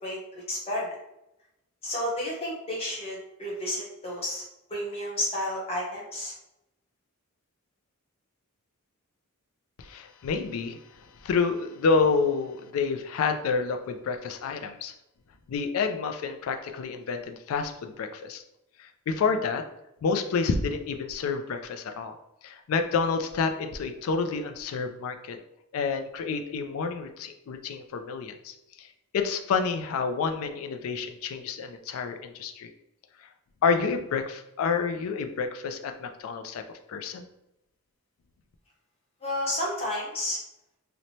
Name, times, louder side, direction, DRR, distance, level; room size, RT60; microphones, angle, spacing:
voice 1, 0.0-0.9 1.8-4.4 4.7-6.3 39.2-40.4, left 1 dB, 25° left, -5 dB, 0.8 m, -31 dB
voice 2, 9.8-14.9 15.5-18.4 18.8-19.6 20.0-22.1 22.4-25.4 25.7-28.9 29.1-32.7 33.2-33.3 33.6-36.6 36.9-37.3, left 5 dB, 75° left, 7 dB, 0.3 m, -29 dB
2.9 x 2.1 x 2.7 m, 0.86 s
head